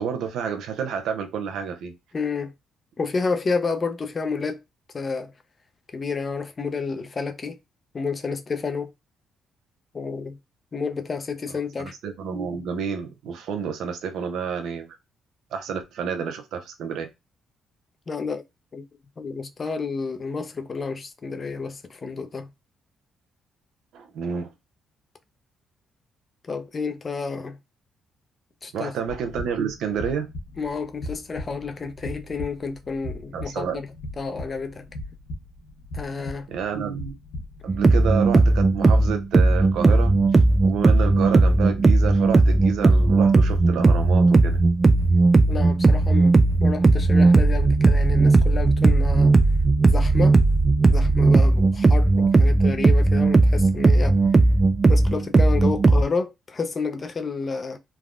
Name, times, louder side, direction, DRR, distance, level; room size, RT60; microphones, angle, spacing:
voice 1, 0.0-1.9 11.8-14.9 15.5-17.1 23.9-24.5 28.7-30.3 33.3-33.8 36.5-37.1 37.6-44.6, right 7 dB, 80° right, 0.6 m, -29 dB
voice 2, 2.1-2.5 3.0-4.6 4.9-5.3 5.9-7.6 7.9-8.9 9.9-10.4 10.7-11.9 18.1-18.4 18.7-18.8 19.2-22.5 26.4-27.6 28.6-28.9 30.6-33.8 34.2-34.9 35.9-36.5 45.5-49.4 49.9-50.4 50.9-54.2 54.9-57.8, left 4 dB, 35° left, 0.5 m, -30 dB
sound 1, 29.1-41.9, left 1 dB, 70° left, 1.0 m, -39 dB
sound 2, 37.7-56.0, right 3 dB, 30° right, 0.4 m, -17 dB
3.4 x 2.2 x 2.4 m
cardioid pair, 90°, 0 cm